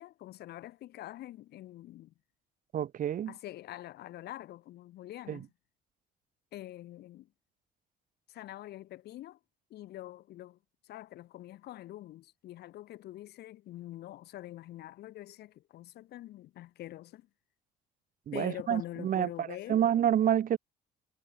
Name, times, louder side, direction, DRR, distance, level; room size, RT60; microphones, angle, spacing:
voice 1, 0.0-2.1 3.3-5.5 6.5-7.3 8.3-9.4 9.7-17.3 18.3-19.8, left 14 dB, 75° left, 7.5 m, -45 dB
voice 2, 2.7-3.3 5.3-5.4 18.3-20.6, right 10 dB, 55° right, 3.8 m, -28 dB
cardioid pair, 110°, 17 cm